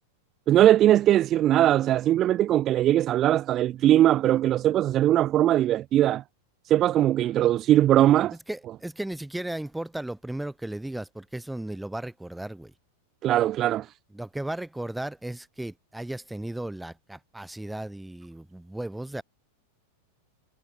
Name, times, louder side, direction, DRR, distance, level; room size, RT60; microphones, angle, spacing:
voice 1, 0.5-6.2 6.7-8.4 13.2-13.9, right 12 dB, 30° right, 0.6 m, -20 dB
voice 2, 8.5-12.7 14.1-19.2, right 1 dB, 5° right, 3.5 m, -35 dB
figure-of-eight pair, 90°, 0 cm